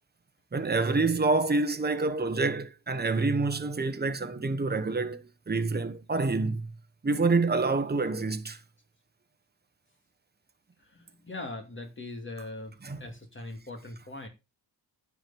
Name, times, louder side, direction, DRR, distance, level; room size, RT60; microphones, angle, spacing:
voice 1, 0.5-6.7 7.0-8.6 12.8-13.0, right 3 dB, 25° right, 1.3 m, -27 dB
voice 2, 10.9-12.7 13.0-14.3, left 2 dB, 30° left, 2.5 m, -40 dB
10.0 x 4.8 x 7.0 m
wide cardioid pair, 105°, 42 cm